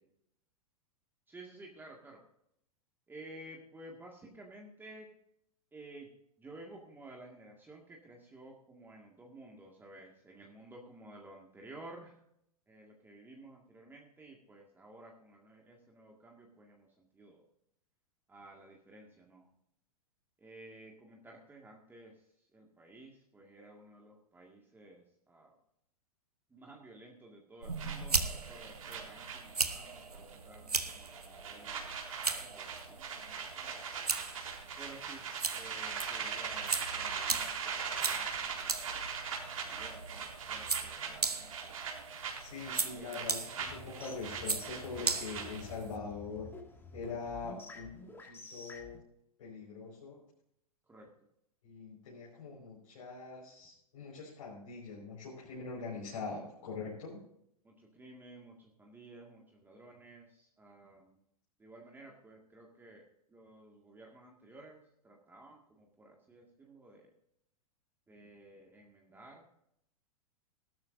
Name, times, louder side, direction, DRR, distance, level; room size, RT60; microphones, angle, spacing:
voice 1, 1.3-2.2 3.1-5.1 5.7-6.1 6.4-12.2 12.7-17.4 18.3-19.5 20.4-22.2 22.5-25.5 26.5-33.8 34.8-35.3 35.5-39.0 39.5-41.8 42.9-43.3 50.9-51.1 57.6-61.2 61.6-63.0 63.3-64.8 65.0-67.1 68.1-69.4, right 2 dB, 10° right, -1 dB, 2.0 m, -54 dB
sound 1, 27.6-46.0, right 4 dB, 85° right, 1.2 m, -38 dB
sound 2, 27.8-30.0 30.3-30.6 30.9-45.8, right 6 dB, 60° right, 3.8 m, -40 dB
voice 2, 42.4-46.5 46.9-47.9 48.2-49.0 49.4-50.2 51.6-57.2, left 4 dB, 60° left, -5 dB, 5.2 m, -43 dB
sound 3, 43.6-49.0, left 3 dB, 10° left, 2.1 m, -50 dB
18.0 x 12.5 x 2.7 m, 0.74 s
figure-of-eight pair, 100°, 19 cm